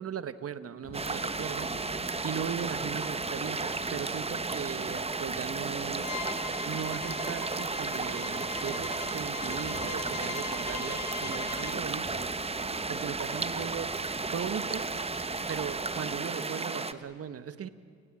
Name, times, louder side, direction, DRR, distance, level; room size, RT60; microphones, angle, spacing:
voice 1, 0.0-1.7 2.2-6.1 6.6-12.3 12.9-13.9 14.3-14.9 15.5-17.7, right 8 dB, 50° right, 13 dB, 1.4 m, -38 dB
sound 1, 0.8-16.3, left 2 dB, 20° left, 2.7 m, -49 dB
sound 2, 0.9-16.9, right 3 dB, 20° right, 1.2 m, -33 dB
Bowed string instrument, 6.0-11.8, left 8 dB, 70° left, 1.6 m, -41 dB
29.5 x 20.0 x 8.8 m, 2.2 s
cardioid pair, 90°, 30 cm